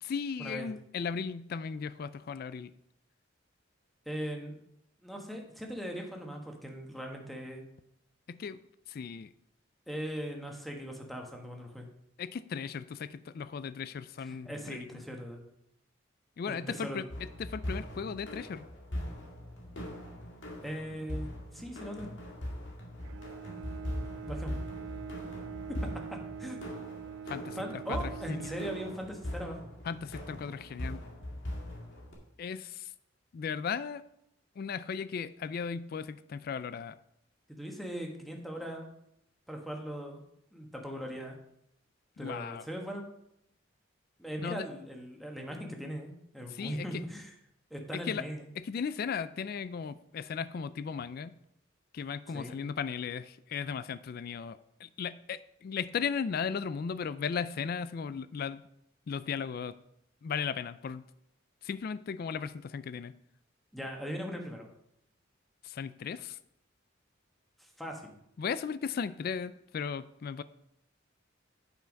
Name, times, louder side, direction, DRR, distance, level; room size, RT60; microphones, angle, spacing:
voice 1, 0.0-2.7 8.3-8.6 8.9-9.3 12.2-15.0 16.4-17.1 17.4-18.7 27.3-27.6 27.9-28.5 29.8-31.0 32.4-32.9 33.3-34.0 34.6-37.0 42.2-42.6 44.4-44.7 46.5-46.9 47.9-48.2 48.6-51.4 51.9-58.6 59.1-59.7 60.2-61.0 61.6-63.1 65.6-66.4 68.4-70.4, left 6 dB, 50° left, 15 dB, 0.3 m, -36 dB
voice 2, 4.0-4.6 5.0-7.6 9.9-11.9 14.2-15.4 16.5-17.0 20.6-22.1 24.2-24.6 26.1-26.6 27.6-29.8 37.5-38.9 39.5-40.2 40.5-41.4 42.2-43.0 44.2-47.3 47.7-48.4 52.3-52.6 63.7-64.7 67.6-68.1, equal, ahead, 1 dB, 1.3 m, -39 dB
sound 1, 17.1-32.1, left 1 dB, 70° left, 2.1 m, -41 dB
Bowed string instrument, 23.0-29.7, right 7 dB, 85° right, 0.3 m, -44 dB
9.0 x 5.6 x 5.2 m, 0.77 s
head